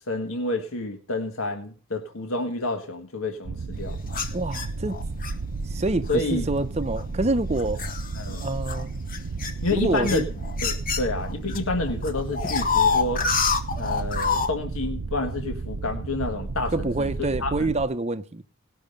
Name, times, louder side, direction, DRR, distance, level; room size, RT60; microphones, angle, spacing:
voice 1, 0.1-4.0 6.1-6.4 8.2-8.5 9.6-10.2 10.6-13.3 13.8-17.1 17.4-17.7, left 2 dB, 70° left, 1.6 m, -29 dB
sound 1, 3.4-17.9, right 3 dB, 75° right, 0.7 m, -33 dB
sound 2, 4.1-5.3 6.1-6.3 6.9-11.6 11.9-14.5, left 5 dB, 40° left, 1.1 m, -27 dB
voice 2, 4.3-5.0 5.7-7.8 8.4-8.9 9.7-10.3 16.7-18.4, right 2 dB, 30° right, 0.7 m, -26 dB
18.5 x 6.3 x 5.2 m
head